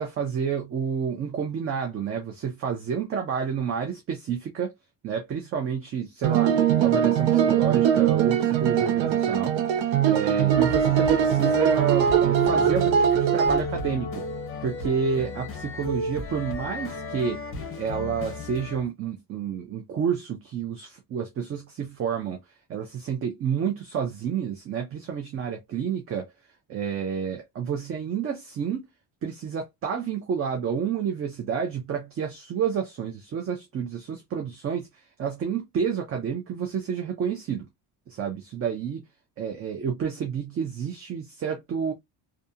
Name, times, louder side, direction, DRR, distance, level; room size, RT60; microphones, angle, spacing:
voice 1, 0.0-4.7 5.0-6.5 6.8-9.8 10.1-14.2 14.6-17.4 17.8-22.4 22.7-26.3 26.7-28.9 29.2-37.7 38.1-39.0 39.4-41.9, right 7 dB, 35° right, 0.4 m, -29 dB
sound 1, 6.2-13.6, right 9 dB, 85° right, 0.7 m, -21 dB
sound 2, 10.5-18.9, left 2 dB, 30° left, 0.7 m, -34 dB
2.7 x 2.3 x 2.4 m
cardioid pair, 175°, 45 cm